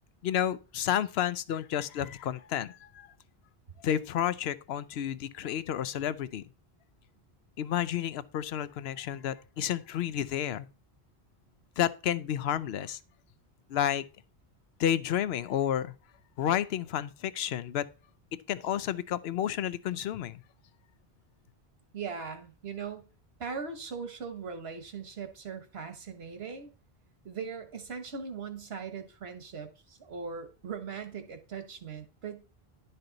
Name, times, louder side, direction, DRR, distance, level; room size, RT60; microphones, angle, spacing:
voice 1, 0.2-3.1 3.8-6.4 7.6-10.7 11.8-13.0 13.7-14.0 14.8-15.9 16.4-17.9 18.5-20.4, left 10 dB, 80° left, 0.8 m, -31 dB
voice 2, 21.9-23.1 23.4-26.7 27.2-32.4, right 5 dB, 80° right, 1.4 m, -40 dB
11.0 x 5.4 x 3.9 m
omnidirectional pair, 1.1 m